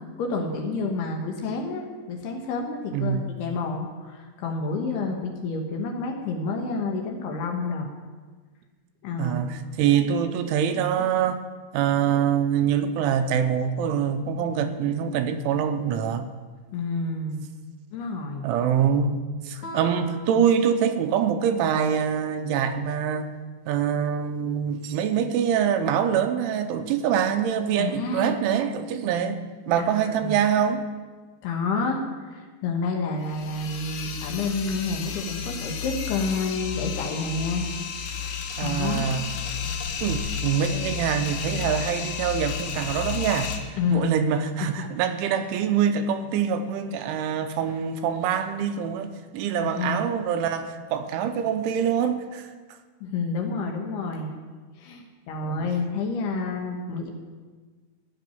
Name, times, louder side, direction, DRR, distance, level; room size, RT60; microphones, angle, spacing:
voice 1, 0.2-7.9 9.0-9.7 16.7-17.4 17.9-18.4 27.8-28.4 29.8-30.4 31.4-37.7 38.6-39.1 43.8-44.1 49.6-50.0 53.0-54.3 54.8-57.1, left 3 dB, 70° left, 3.0 m, -29 dB
voice 2, 2.9-3.3 9.2-11.4 11.7-16.3 18.4-19.2 19.4-23.3 23.7-29.4 29.7-30.9 38.6-39.4 40.0-52.5 55.4-55.8, right 8 dB, 90° right, 3.3 m, -25 dB
Guitar, 19.6-22.1, equal, 45° left, 1.8 m, -42 dB
sound 1, 33.2-43.6, left 7 dB, 90° left, 1.7 m, -32 dB
16.0 x 6.1 x 9.3 m
omnidirectional pair, 5.4 m